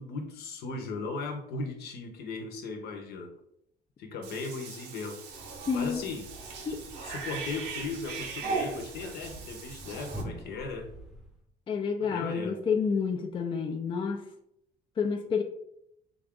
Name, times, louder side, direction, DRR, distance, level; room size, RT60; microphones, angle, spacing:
voice 1, 0.0-3.3 4.0-5.2 5.7-6.3 7.0-10.9 12.0-12.6, left 3 dB, 70° left, 5 dB, 0.8 m, -37 dB
Cat / Bathtub (filling or washing), 4.2-10.2, right 4 dB, 85° right, 0.8 m, -39 dB
Thump thud, 5.2-11.5, equal, 5° right, 0.7 m, -46 dB
voice 2, 5.7-6.1 6.7-6.8 11.7-14.2 15.0-15.4, left 5 dB, 30° left, 3 dB, 0.4 m, -29 dB
3.8 x 2.4 x 3.6 m, 0.75 s
cardioid pair, 110°, 17 cm